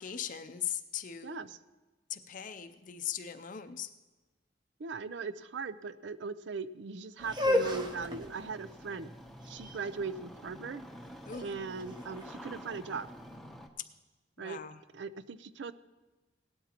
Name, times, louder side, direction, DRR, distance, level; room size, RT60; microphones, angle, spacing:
voice 1, 0.0-1.5 2.1-3.9 11.3-11.5 14.4-14.8, left 9 dB, 45° left, 9 dB, 0.5 m, -39 dB
voice 2, 1.2-1.6 4.8-9.1 9.5-10.8 11.4-13.1 14.4-14.6 14.9-15.7, right 4 dB, 75° right, 14 dB, 0.5 m, -39 dB
Engine starting, 7.2-13.7, equal, ahead, 0.8 m, -49 dB
sound 1, 7.2-13.1, left 1 dB, 25° right, 1.0 m, -35 dB
17.5 x 12.0 x 2.9 m, 1.2 s
head